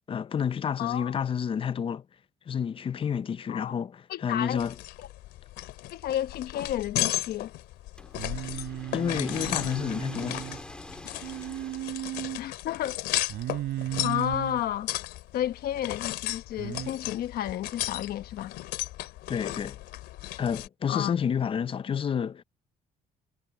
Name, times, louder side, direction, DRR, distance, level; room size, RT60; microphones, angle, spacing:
voice 1, 0.1-2.1 2.5-4.7 8.9-10.4 19.3-19.8 20.4-22.4, left 7 dB, 30° left, 0.5 m, -29 dB
voice 2, 0.8-1.1 3.5-3.8 4.1-4.6 5.9-7.5 12.4-13.0 14.0-14.9 15.3-18.5 20.9-21.1, left 12 dB, 65° left, 1.0 m, -31 dB
sound 1, 4.6-20.7, left 16 dB, 85° left, 3.1 m, -35 dB
sound 2, 8.0-12.4, left 1 dB, 5° left, 3.0 m, -44 dB
Singing, 8.2-10.6 11.2-12.4 13.3-14.6 16.6-16.9, right 14 dB, 75° right, 3.9 m, -35 dB
cardioid pair, 110°, 17 cm